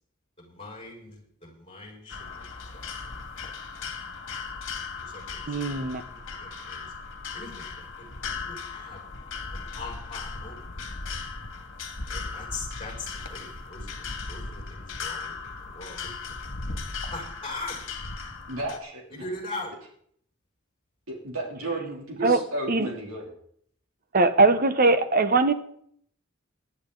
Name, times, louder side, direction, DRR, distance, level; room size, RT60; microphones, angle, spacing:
voice 1, 0.4-2.4 5.0-5.6 6.1-6.8 7.3-9.0 9.5-10.6 12.1-16.1 17.1-17.8 19.1-19.7, left 2 dB, 25° left, -1 dB, 6.5 m, -41 dB
sound 1, 2.1-18.8, left 4 dB, 65° left, 2.0 m, -37 dB
voice 2, 5.5-6.0 22.2-22.4 22.7-22.9 24.1-25.5, right 3 dB, 45° right, 11 dB, 1.0 m, -21 dB
voice 3, 18.5-19.3 21.1-23.2, right 2 dB, 90° right, -1 dB, 3.1 m, -33 dB
18.5 x 11.5 x 3.9 m, 0.65 s
head